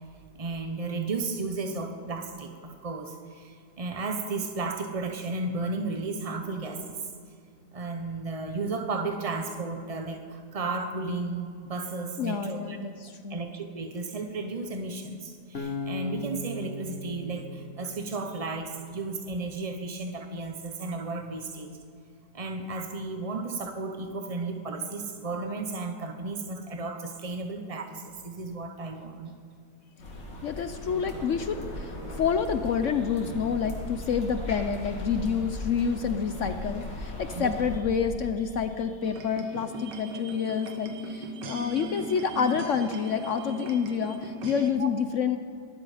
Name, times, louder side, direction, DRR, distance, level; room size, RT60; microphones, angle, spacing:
voice 1, 0.3-7.1 7.7-12.8 13.3-21.8 22.3-29.3 37.3-37.5 44.8-44.9, right 3 dB, 40° right, 5 dB, 0.5 m, -34 dB
voice 2, 12.2-13.4 30.4-45.4, left 6 dB, 65° left, 9 dB, 0.7 m, -28 dB
Acoustic guitar, 15.5-18.8, left 3 dB, 35° left, 1.5 m, -38 dB
sound 1, 30.0-37.8, left 1 dB, 80° left, 3.2 m, -38 dB
sound 2, 39.0-44.7, right 1 dB, 75° right, 1.8 m, -38 dB
18.0 x 13.0 x 5.0 m, 2.3 s
omnidirectional pair, 1.9 m